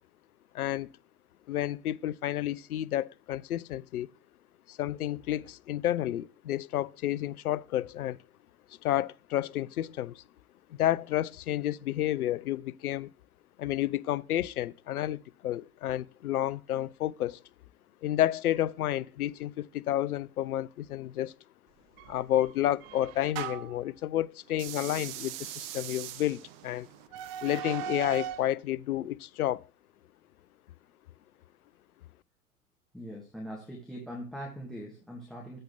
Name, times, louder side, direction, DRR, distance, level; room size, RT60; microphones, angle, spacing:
voice 1, 0.5-0.9 1.5-4.1 4.7-8.2 8.8-10.2 10.7-13.1 13.6-17.4 18.0-21.3 22.1-26.9 27.4-29.6, left 13 dB, 80° left, 0.5 m, -30 dB
sound 1, 22.0-23.8 24.5-28.5, right 10 dB, 40° right, 0.6 m, -39 dB
voice 2, 32.9-35.6, equal, ahead, 2.0 m, -41 dB
7.9 x 6.4 x 3.4 m
figure-of-eight pair, 95°, 44 cm